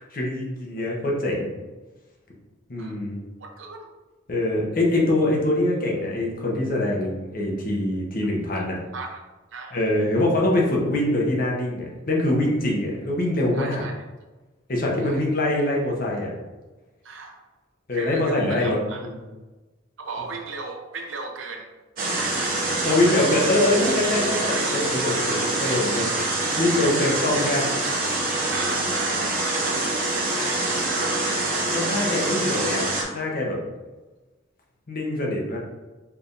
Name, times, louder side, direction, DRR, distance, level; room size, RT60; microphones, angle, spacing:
voice 1, 0.1-1.5 2.7-3.2 4.3-8.8 9.7-13.8 14.7-16.3 17.9-19.2 22.8-26.1 26.5-27.6 31.7-32.9 33.1-33.6 34.9-35.6, left 1 dB, 45° left, -2 dB, 0.8 m, -24 dB
voice 2, 3.4-3.9 8.9-9.2 9.5-9.9 13.5-13.9 15.0-15.3 17.0-17.4 17.9-19.0 20.0-21.7 22.2-23.5 24.5-24.6 27.1-27.4 28.5-31.4 32.2-32.5, right 3 dB, 75° right, 2 dB, 0.6 m, -36 dB
sound 1, 22.0-33.0, right 2 dB, 45° right, 0.9 m, -25 dB
4.6 x 3.3 x 2.5 m, 1.2 s
head